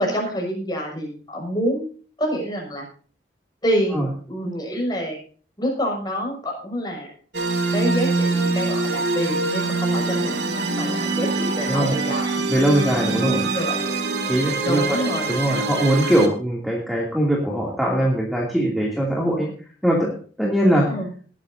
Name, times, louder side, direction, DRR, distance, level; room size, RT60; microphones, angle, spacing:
voice 1, 0.0-1.9 2.2-2.8 3.6-5.2 5.6-7.1 7.7-12.4 13.1-13.8 14.6-15.3 20.8-21.1, equal, 25° left, -1 dB, 6.0 m, -27 dB
sound 1, 7.3-16.3, right 3 dB, 70° right, 2.2 m, -24 dB
voice 2, 12.5-13.4 14.3-15.0 15.3-19.5 19.8-20.9, right 1 dB, ahead, -3 dB, 2.7 m, -21 dB
19.5 x 11.5 x 2.7 m, 0.42 s
head